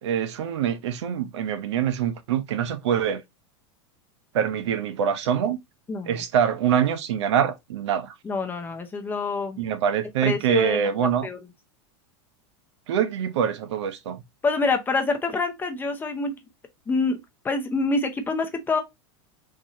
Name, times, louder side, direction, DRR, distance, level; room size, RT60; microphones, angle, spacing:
voice 1, 0.0-3.2 4.3-5.6 6.1-8.1 9.6-11.3 12.9-14.2, right 8 dB, 85° right, 0.7 m, -24 dB
voice 2, 5.9-6.2 8.2-9.6 10.2-10.8 11.2-11.4 14.4-16.3 16.9-17.2 17.4-18.8, left 3 dB, 15° left, 0.7 m, -26 dB
4.0 x 2.7 x 2.9 m
supercardioid pair, 140°, 14 cm